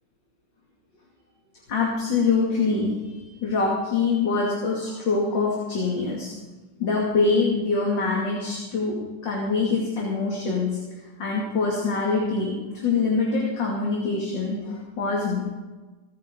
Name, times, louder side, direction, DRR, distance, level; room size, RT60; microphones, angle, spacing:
voice 1, 1.7-6.3 6.8-8.9 9.2-10.7 11.2-12.5 12.8-15.4, left 4 dB, 55° left, -3 dB, 3.2 m, -24 dB
27.5 x 9.4 x 3.9 m, 1.2 s
omnidirectional pair, 2.4 m